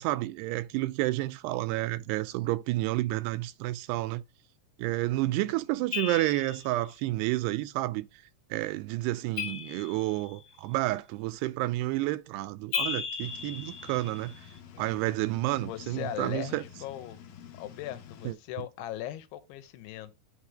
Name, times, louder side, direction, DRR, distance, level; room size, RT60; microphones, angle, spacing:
voice 1, 0.0-4.2 4.8-8.1 8.5-14.4 14.8-16.6 18.3-18.4, right 17 dB, 90° right, 2.7 m, -30 dB
sound 1, 5.9-6.7 9.4-10.4 12.7-14.4, left 6 dB, 50° left, 1.4 m, -35 dB
sound 2, 13.2-18.3, left 8 dB, 65° left, 2.3 m, -49 dB
voice 2, 15.5-17.2 17.6-20.2, left 12 dB, 85° left, 2.9 m, -39 dB
8.3 x 3.3 x 5.1 m
omnidirectional pair, 4.7 m